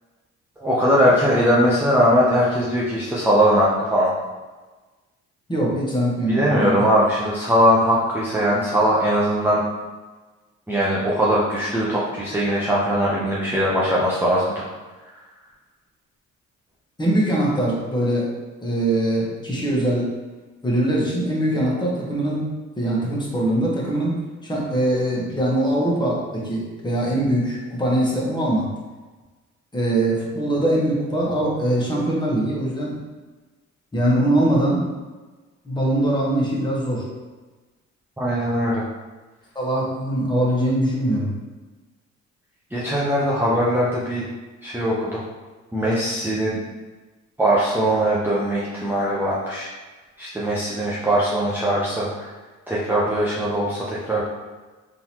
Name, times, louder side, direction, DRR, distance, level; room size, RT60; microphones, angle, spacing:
voice 1, 0.6-4.1 6.3-9.6 10.7-14.7 38.2-38.8 42.7-44.2 44.6-45.2 45.7-46.6 47.4-49.7 50.2-52.3 52.7-54.2, equal, 5° right, -7 dB, 0.6 m, -20 dB
voice 2, 5.5-6.8 17.0-18.3 18.6-20.1 20.6-22.5 22.8-24.2 24.4-28.7 29.7-33.0 33.9-34.8 35.6-37.1 39.5-41.3, right 1 dB, 15° left, -4 dB, 1.1 m, -22 dB
3.8 x 2.7 x 2.9 m, 1.3 s
cardioid pair, 90°, 30 cm